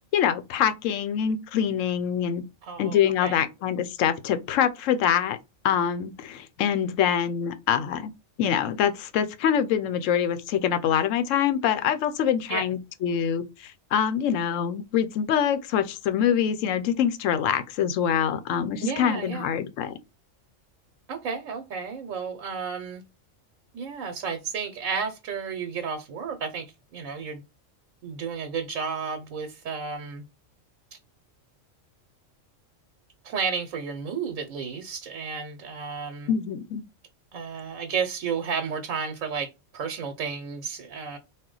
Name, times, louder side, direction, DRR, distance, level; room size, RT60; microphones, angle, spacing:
voice 1, 0.0-2.4 2.8-5.4 5.6-8.1 8.4-19.9 36.3-36.8, left 8 dB, 80° left, 1.0 m, -25 dB
voice 2, 2.6-3.4 12.5-12.6 18.8-19.5 21.1-23.0 23.7-26.7 26.9-27.4 28.0-30.2 33.2-36.3 37.3-41.2, right 6 dB, 80° right, 1.1 m, -32 dB
4.2 x 2.2 x 3.8 m
omnidirectional pair, 1.3 m